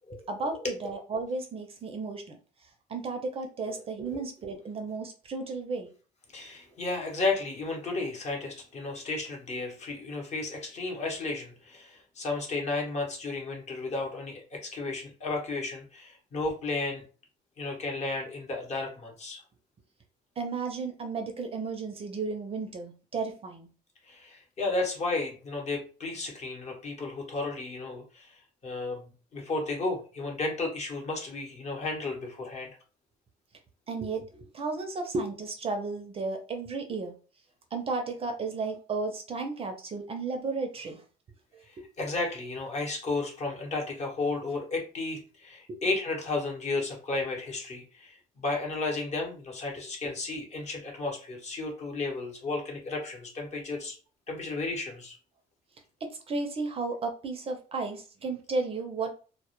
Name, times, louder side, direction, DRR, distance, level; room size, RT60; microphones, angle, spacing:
voice 1, 0.3-2.4 2.9-5.9 20.4-23.7 33.9-37.1 37.7-41.0 41.8-41.9 45.7-45.8 56.0-59.1, right 3 dB, 35° right, 4 dB, 0.4 m, -33 dB
voice 2, 6.3-17.0 17.6-19.4 24.1-29.0 29.3-32.7 42.0-54.0 54.3-55.2, left 3 dB, 40° left, 1 dB, 0.8 m, -33 dB
2.1 x 2.0 x 2.9 m, 0.37 s
cardioid pair, 110°, 17 cm